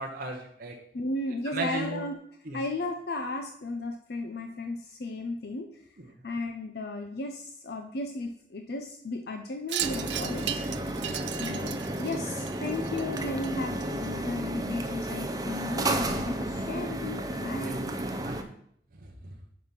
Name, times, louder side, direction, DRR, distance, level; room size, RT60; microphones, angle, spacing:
voice 1, 0.0-0.7 1.4-2.0 2.4-2.6 6.0-6.1 11.0-11.2 12.9-13.0 17.6-18.4 19.0-19.3, right 2 dB, 50° right, 1 dB, 0.8 m, -37 dB
voice 2, 0.9-2.2 2.5-5.8 6.2-10.7 11.4-17.7, left 2 dB, 55° left, 5 dB, 0.5 m, -35 dB
Wind chime, 9.7-14.3, right 11 dB, 75° right, 0.4 m, -37 dB
sound 1, 9.8-18.4, right 1 dB, 20° right, 0.5 m, -32 dB
5.4 x 4.8 x 5.7 m, 0.68 s
head